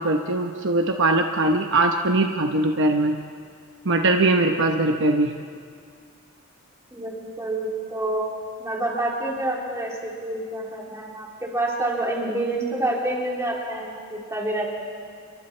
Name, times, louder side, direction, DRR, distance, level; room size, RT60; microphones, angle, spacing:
voice 1, 0.0-3.1 3.8-5.3, right 2 dB, 60° right, 3 dB, 1.0 m, -21 dB
voice 2, 6.9-8.3 8.6-14.6, right 1 dB, 15° right, -3 dB, 3.8 m, -28 dB
29.5 x 23.0 x 4.5 m, 2.2 s
head